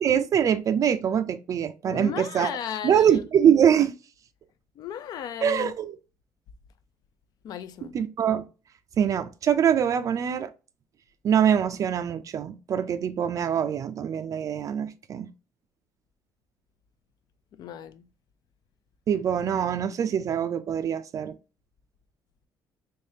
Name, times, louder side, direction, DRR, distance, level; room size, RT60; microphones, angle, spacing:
voice 1, 0.0-2.5 2.8-3.9 5.4-5.9 7.9-8.4 9.0-10.5 11.2-15.3 19.1-21.3, right 8 dB, 45° right, 0.4 m, -23 dB
voice 2, 1.9-3.1 4.8-5.7 7.4-8.0 17.6-18.1, left 9 dB, 60° left, 0.4 m, -35 dB
3.4 x 3.2 x 2.7 m
cardioid pair, 100°, 8 cm